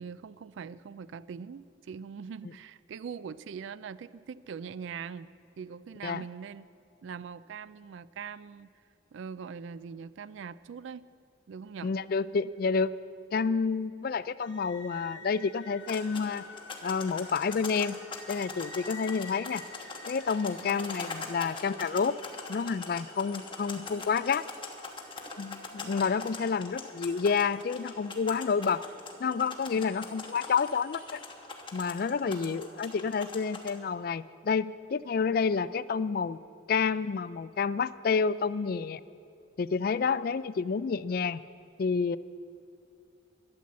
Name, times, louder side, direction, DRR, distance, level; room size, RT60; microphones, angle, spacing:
voice 1, 0.0-5.3 5.6-6.7 7.0-8.7 9.1-11.0 11.5-11.9 20.6-21.1 29.7-29.9 32.2-32.6, right 6 dB, 70° right, 17 dB, 0.3 m, -42 dB
voice 2, 11.8-12.9 13.3-16.5 16.8-18.0 18.3-19.6 20.1-22.2 22.5-24.4 25.4-28.8 29.2-31.2 31.7-36.4 36.7-39.0 39.6-41.4 41.8-42.2, left 5 dB, 45° left, 16 dB, 0.3 m, -29 dB
sound 1, 14.4-31.2, left 3 dB, 65° left, 1.4 m, -52 dB
sound 2, 15.8-33.7, left 3 dB, 25° left, 1.2 m, -43 dB
12.5 x 10.5 x 7.4 m, 2.6 s
head